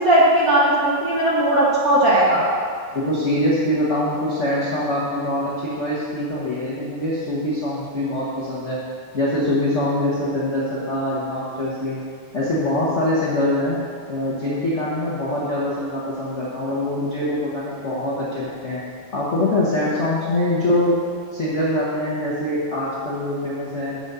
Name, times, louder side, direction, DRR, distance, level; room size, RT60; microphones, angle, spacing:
voice 1, 0.0-2.5, right 1 dB, 40° right, -7 dB, 1.5 m, -17 dB
voice 2, 2.9-8.8 9.1-12.0 12.3-13.8 14.1-18.8 19.1-21.0 21.3-24.0, left 1 dB, 75° left, -7 dB, 0.6 m, -23 dB
7.0 x 6.4 x 6.8 m, 2.1 s
omnidirectional pair, 3.5 m